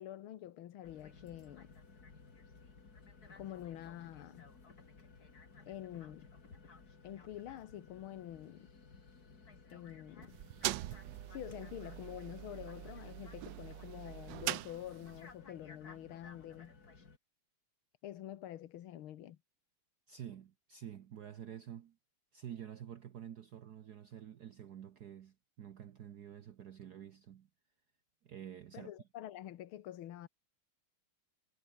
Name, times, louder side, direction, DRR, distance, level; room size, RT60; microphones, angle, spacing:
voice 1, 0.0-1.7 3.4-4.5 5.7-6.3 7.0-8.7 9.7-10.4 11.3-16.8 18.0-19.4 28.7-30.3, left 12 dB, 75° left, 1.9 m, -47 dB
sound 1, 0.8-17.2, left 4 dB, 45° left, 3.3 m, -57 dB
sound 2, 10.2-15.3, right 15 dB, 70° right, 1.2 m, -42 dB
voice 2, 20.1-22.0 22.3-27.5 28.2-28.9, right 10 dB, 55° right, 1.3 m, -49 dB
omnidirectional pair, 2.3 m